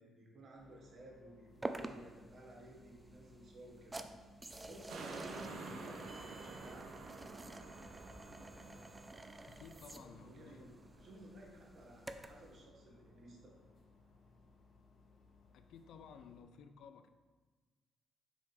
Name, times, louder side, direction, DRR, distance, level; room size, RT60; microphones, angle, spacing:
voice 1, 0.0-4.0 4.6-6.0 6.4-6.9 10.0-13.5, right 1 dB, 55° right, -2 dB, 1.7 m, -55 dB
Fridge Compressor (loop), 0.5-16.4, left 4 dB, 55° left, 1.9 m, -65 dB
sound 1, 1.6-12.5, right 2 dB, 20° right, 0.4 m, -50 dB
sound 2, 4.9-11.5 12.0-12.1, right 3 dB, 80° right, 0.7 m, -51 dB
voice 2, 9.5-10.7 15.5-17.1, left 6 dB, 75° left, 8 dB, 0.4 m, -56 dB
6.2 x 3.7 x 4.6 m, 1.3 s
cardioid pair, 90°, 0 cm